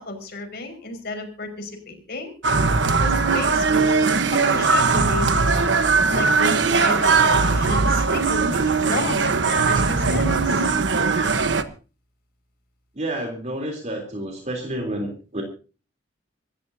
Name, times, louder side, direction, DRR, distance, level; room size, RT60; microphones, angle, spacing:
voice 1, 0.0-2.3 3.0-10.7, left 2 dB, 60° left, 5 dB, 5.5 m, -32 dB
sound 1, 2.4-11.6, right 4 dB, 80° right, 1.2 m, -20 dB
voice 2, 12.9-15.4, right 1 dB, 40° right, 2 dB, 3.4 m, -29 dB
26.5 x 14.0 x 2.8 m, 0.35 s
head